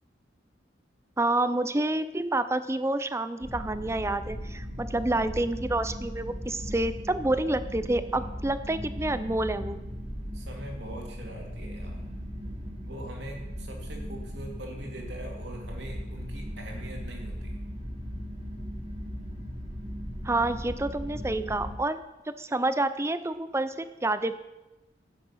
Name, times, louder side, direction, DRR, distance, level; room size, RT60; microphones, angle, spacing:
voice 1, 1.2-9.8 20.2-24.3, right 2 dB, 15° right, 12 dB, 0.5 m, -28 dB
sound 1, 3.4-21.8, equal, 35° right, 2.5 m, -38 dB
voice 2, 10.3-12.1 12.8-17.6, right 1 dB, 65° right, 1 dB, 2.7 m, -42 dB
12.5 x 9.1 x 5.7 m, 1.0 s
head